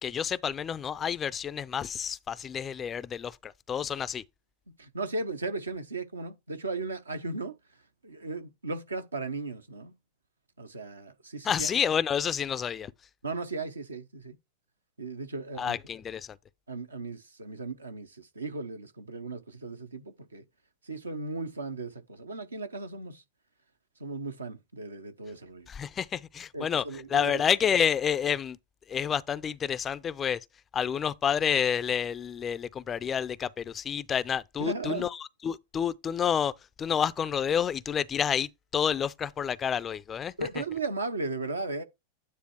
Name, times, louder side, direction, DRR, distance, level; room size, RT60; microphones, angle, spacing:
voice 1, 0.0-4.2 11.4-12.9 15.6-16.4 25.7-28.6 28.9-30.5 30.7-36.5 36.8-40.3, left 8 dB, 25° left, 0.4 m, -29 dB
voice 2, 4.7-7.6 8.0-10.0 10.6-11.7 13.2-14.4 15.0-15.8 16.7-20.4 20.8-23.2 24.0-25.7 26.5-27.4 34.6-35.1 40.4-41.8, right 3 dB, 75° right, 0.9 m, -36 dB
9.6 x 3.4 x 4.6 m
figure-of-eight pair, 90°, 0 cm